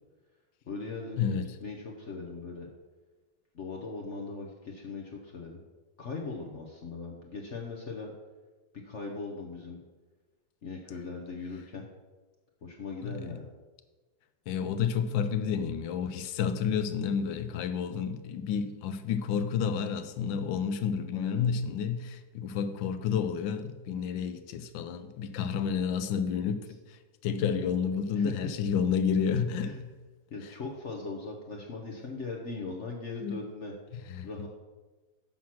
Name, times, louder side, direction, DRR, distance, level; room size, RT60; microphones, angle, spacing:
voice 1, 0.7-1.3 1.6-2.7 3.5-5.6 6.0-8.1 8.8-9.8 10.6-11.9 12.6-13.5 21.1-21.5 28.2-28.5 29.6-29.8 30.3-33.7 34.2-34.5, left 4 dB, 50° left, 0 dB, 1.0 m, -39 dB
voice 2, 1.2-1.6 13.0-13.4 14.5-30.0 30.4-30.5 33.2-33.4 33.9-34.5, left 7 dB, 80° left, 11 dB, 1.4 m, -30 dB
7.4 x 5.7 x 6.0 m, 1.3 s
omnidirectional pair, 2.1 m